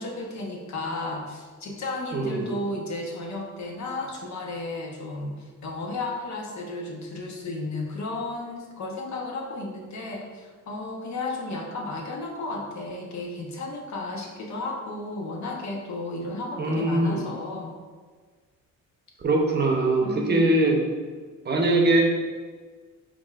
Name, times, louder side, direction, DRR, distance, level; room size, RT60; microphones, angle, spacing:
voice 1, 0.0-17.8 20.0-20.6, left 2 dB, 60° left, 0 dB, 0.8 m, -33 dB
voice 2, 2.1-2.5 16.6-17.3 19.2-20.8 21.4-22.0, right 2 dB, 30° right, 1 dB, 0.8 m, -22 dB
5.0 x 3.5 x 2.4 m, 1.5 s
cardioid pair, 105°, 32 cm